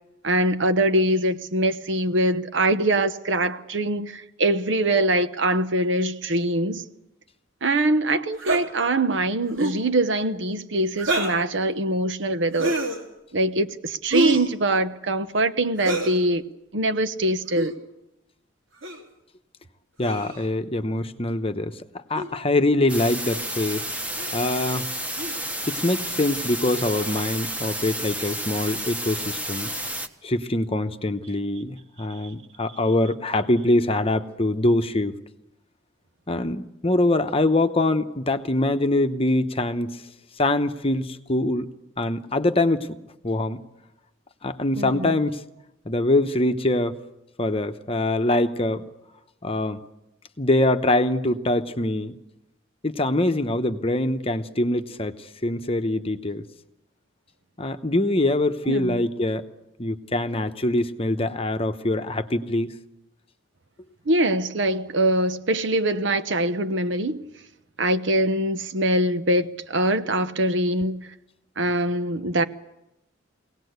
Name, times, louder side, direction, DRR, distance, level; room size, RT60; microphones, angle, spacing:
voice 1, 0.2-6.8 7.6-12.8 13.3-16.4 16.7-17.7 44.7-45.2 58.7-59.0 64.1-67.2 67.8-71.1 71.6-72.4, right 1 dB, 70° right, 1.0 m, -23 dB
sound 1, 8.4-8.6 9.5-9.8 11.0-11.4 12.5-13.0 14.1-14.5 15.8-16.2 17.5-17.7 18.8-19.0 20.0-20.5 22.1-22.3 23.3-23.5 24.1-24.4 25.2-25.4 26.9-27.3, right 1 dB, 90° right, 3.3 m, -26 dB
voice 2, 20.0-21.8 22.1-23.8 24.3-24.9 25.7-29.7 30.2-35.1 36.3-40.0 40.4-42.9 43.2-43.6 44.4-45.4 45.8-47.0 47.4-48.9 49.4-49.8 50.4-52.2 52.8-56.4 57.6-59.4 59.8-62.7, left 1 dB, 30° left, 0.9 m, -24 dB
sound 2, 22.9-30.1, right 1 dB, 5° right, 1.1 m, -31 dB
23.5 x 18.0 x 8.1 m
head